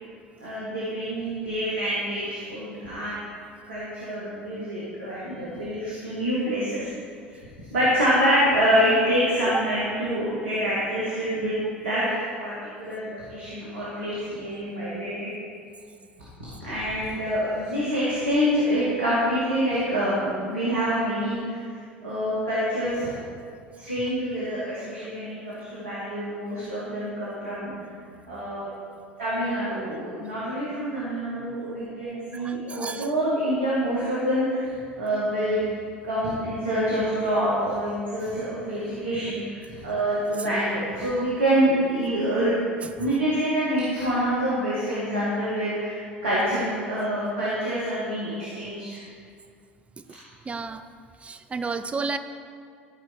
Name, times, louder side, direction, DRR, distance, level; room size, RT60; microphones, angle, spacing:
voice 1, 0.4-3.2 3.7-6.9 7.7-12.0 12.4-15.3 16.6-21.6 22.0-23.1 23.8-27.7 28.3-28.7 29.2-34.7 35.0-35.6 36.0-42.6 43.0-49.0, equal, 80° right, -9 dB, 2.2 m, -26 dB
voice 2, 32.3-33.1 42.8-42.9 50.4-50.8 51.2-52.2, right 4 dB, 20° right, 10 dB, 0.5 m, -32 dB
13.5 x 5.0 x 4.7 m, 2.2 s
figure-of-eight pair, 70°, 6 cm